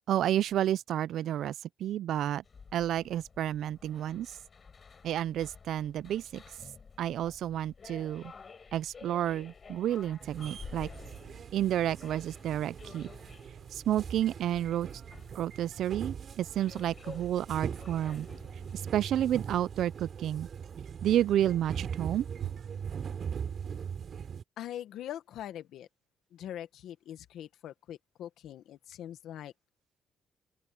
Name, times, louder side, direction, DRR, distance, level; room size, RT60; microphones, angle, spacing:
voice 1, 0.1-1.5 1.8-2.4 2.7-4.3 5.0-6.4 7.0-8.3 8.7-10.9 11.5-13.1 13.7-14.9 15.3-18.3 18.7-20.5 21.0-22.3, right 11 dB, 75° right, 0.4 m, -30 dB
sound 1, 2.4-19.1, left 5 dB, 40° left, 7.9 m, -52 dB
sound 2, 10.2-24.4, right 7 dB, 55° right, 3.6 m, -41 dB
voice 2, 24.6-25.9 26.3-29.5, left 11 dB, 80° left, 1.6 m, -42 dB
open air
cardioid pair, 90°, 0 cm